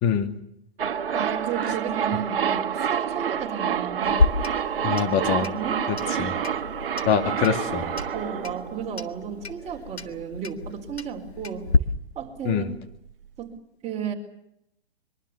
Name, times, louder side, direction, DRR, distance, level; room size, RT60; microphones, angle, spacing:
voice 1, 0.0-0.4 4.8-5.5 6.2-6.3 7.1-7.8 12.4-12.7, left 7 dB, 30° left, 6 dB, 2.6 m, -23 dB
sound 1, 0.8-9.6 9.9-10.0, right 8 dB, 60° right, 1.7 m, -28 dB
voice 2, 1.1-4.2 5.4-6.1 8.1-11.7 12.1-12.6 13.4-13.5 13.8-14.1, right 8 dB, 20° right, 2 dB, 4.5 m, -33 dB
Clock, 4.1-11.8, left 4 dB, 80° left, 1.7 m, -30 dB
23.5 x 23.5 x 7.1 m, 0.77 s
figure-of-eight pair, 115°, 32 cm